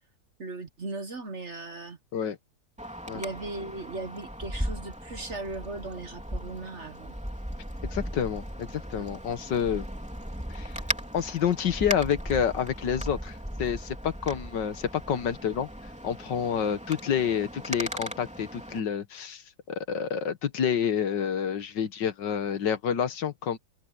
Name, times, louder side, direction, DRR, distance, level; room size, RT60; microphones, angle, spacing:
voice 1, 0.4-2.0 3.1-7.1 8.9-9.2, right 3 dB, 45° right, 1.3 m, -38 dB
Wind, 2.8-18.8, equal, 5° right, 3.2 m, -37 dB
voice 2, 7.9-9.9 10.5-10.8 11.1-15.7 16.0-19.4 19.7-23.6, left 8 dB, 70° left, 1.8 m, -28 dB
omnidirectional pair, 2.0 m